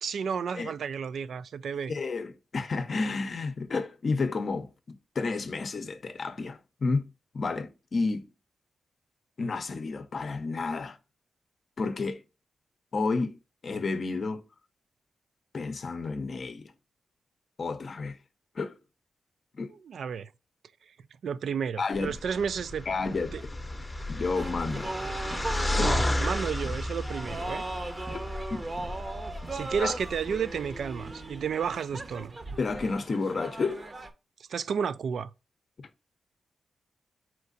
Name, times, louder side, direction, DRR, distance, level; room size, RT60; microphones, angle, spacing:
voice 1, 0.0-1.9 19.8-20.3 21.2-22.9 23.3-23.4 25.8-27.6 29.5-32.4 34.5-35.3, right 7 dB, 75° right, 0.3 m, -32 dB
voice 2, 1.9-7.1 7.3-8.3 9.4-11.0 11.8-12.2 12.9-14.4 15.5-16.7 17.6-18.2 18.6-18.8 19.6-19.7 21.8-22.2 22.9-23.4 24.1-24.9 25.8-25.9 28.1-28.7 29.8-29.9 32.6-33.8 35.8-35.9, left 4 dB, 50° left, 0.6 m, -31 dB
sound 1, 21.9-31.1, left 1 dB, 10° left, 0.7 m, -33 dB
sound 2, 24.3-34.1, right 2 dB, 30° right, 0.6 m, -38 dB
4.4 x 2.5 x 3.9 m
wide cardioid pair, 100°, 0 cm